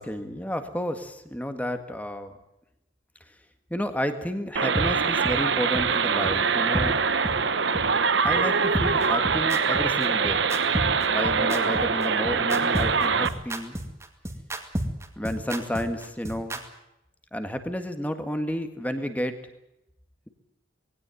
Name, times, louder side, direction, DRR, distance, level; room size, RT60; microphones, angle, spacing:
voice 1, 0.0-2.4 3.7-7.0 8.2-10.5 11.1-13.8 15.2-16.6 17.3-19.4, equal, 10° left, 8 dB, 1.8 m, -31 dB
sound 1, 4.6-13.3, right 5 dB, 65° right, 1.1 m, -24 dB
sound 2, 4.8-4.9 5.2-5.4 5.7-5.8 6.3-6.4 6.7-6.9 7.2-7.4 7.7-7.8 8.3-8.4 8.7-16.6, right 1 dB, 15° right, 2.3 m, -30 dB
20.0 x 17.0 x 9.3 m, 0.87 s
head